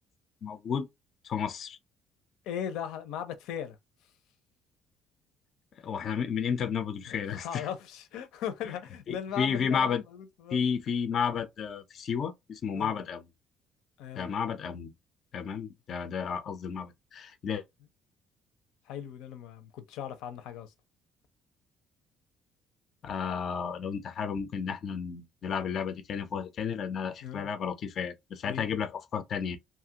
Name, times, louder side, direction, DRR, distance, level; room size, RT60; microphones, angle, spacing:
voice 1, 0.4-0.9 1.2-1.8 5.8-7.7 9.1-10.0 10.5-13.2 14.2-14.9 15.3-17.6 23.0-29.6, left 7 dB, 40° left, 0.4 m, -32 dB
voice 2, 2.5-3.8 7.1-10.6 12.7-12.9 14.0-14.3 18.9-20.7 27.2-27.5 28.5-28.8, left 9 dB, 85° left, 0.7 m, -38 dB
2.8 x 2.4 x 2.8 m
cardioid pair, 175°, 0 cm